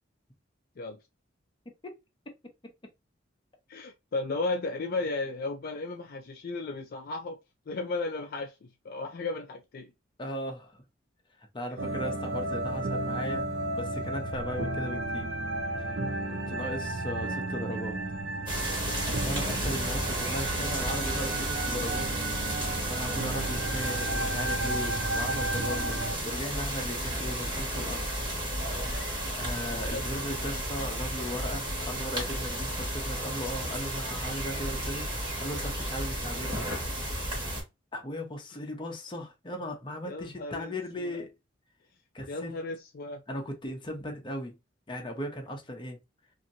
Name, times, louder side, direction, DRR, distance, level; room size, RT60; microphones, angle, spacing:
voice 1, 3.7-7.4 7.7-9.9 29.9-30.3 40.1-41.2 42.3-43.2, left 3 dB, 50° left, 0.4 m, -35 dB
voice 2, 10.2-10.8 11.5-13.5 13.7-15.3 16.3-18.0 18.9-22.1 22.8-28.1 29.4-35.1 35.4-36.7 37.9-41.3 42.1-42.5 43.3-44.6 44.9-46.0, equal, 25° left, 0.7 m, -37 dB
sound 1, 11.8-26.1, right 2 dB, 70° right, 0.5 m, -33 dB
sound 2, 18.5-37.6, right 1 dB, 25° right, 1.4 m, -33 dB
2.8 x 2.6 x 2.6 m
head